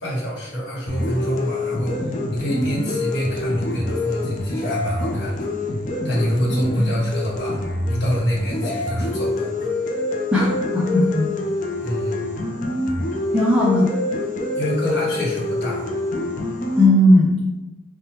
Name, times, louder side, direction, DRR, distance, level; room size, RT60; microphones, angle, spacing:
voice 1, 0.0-5.5 6.0-7.6 7.9-9.7 11.7-12.2 14.6-15.9, equal, 80° left, -5 dB, 1.2 m, -26 dB
sound 1, 0.9-16.9, left 2 dB, 45° left, 0.5 m, -26 dB
voice 2, 10.3-11.3 13.3-13.9 16.8-17.4, left 1 dB, 5° right, -6 dB, 0.4 m, -16 dB
4.9 x 2.2 x 2.9 m, 0.98 s
head